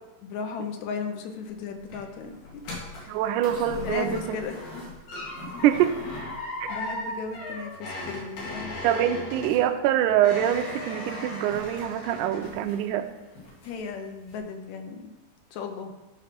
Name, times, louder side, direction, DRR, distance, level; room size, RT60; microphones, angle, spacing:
voice 1, 0.2-2.6 3.0-3.2 3.8-4.9 6.7-8.7 13.6-15.1 15.5-15.9, left 5 dB, 70° left, 5 dB, 1.9 m, -36 dB
sound 1, 1.5-13.0 13.4-13.9 14.3-14.4, left 1 dB, 90° left, 3.9 m, -37 dB
voice 2, 3.1-4.4 5.6-5.9 6.6-6.7 8.8-13.1, right 11 dB, 80° right, 9 dB, 2.0 m, -24 dB
12.0 x 4.8 x 5.9 m, 1.1 s
omnidirectional pair, 3.9 m